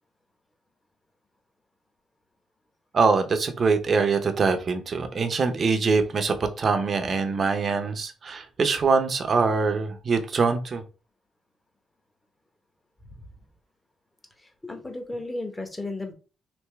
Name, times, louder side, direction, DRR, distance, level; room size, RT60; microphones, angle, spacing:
voice 1, 2.9-10.8, right 4 dB, 45° right, 0.7 m, -23 dB
voice 2, 14.4-16.1, left 2 dB, 15° left, 0.9 m, -35 dB
3.4 x 2.7 x 3.2 m
cardioid pair, 90°, 0 cm